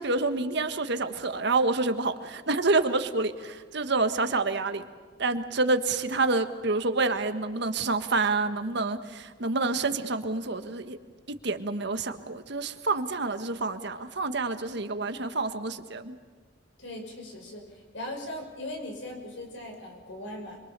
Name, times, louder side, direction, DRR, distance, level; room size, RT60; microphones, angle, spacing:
voice 1, 0.0-4.8 5.2-11.0 11.4-16.2, right 3 dB, 65° right, 8 dB, 1.5 m, -28 dB
voice 2, 16.8-20.6, left 1 dB, 80° left, 2 dB, 5.7 m, -39 dB
26.5 x 23.5 x 6.8 m, 1.6 s
head